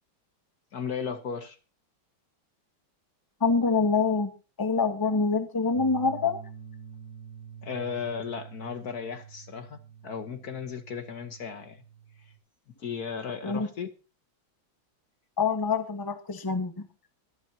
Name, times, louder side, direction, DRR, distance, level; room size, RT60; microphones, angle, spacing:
voice 1, 0.7-1.6 7.6-11.8 12.8-13.9, left 6 dB, 55° left, 1.5 m, -35 dB
voice 2, 3.4-4.3 4.6-6.4 13.4-13.7 15.4-16.7, left 4 dB, 15° left, 1.3 m, -25 dB
sound 1, 5.7-12.4, right 7 dB, 40° left, 2.2 m, -47 dB
24.0 x 8.5 x 2.8 m
omnidirectional pair, 2.1 m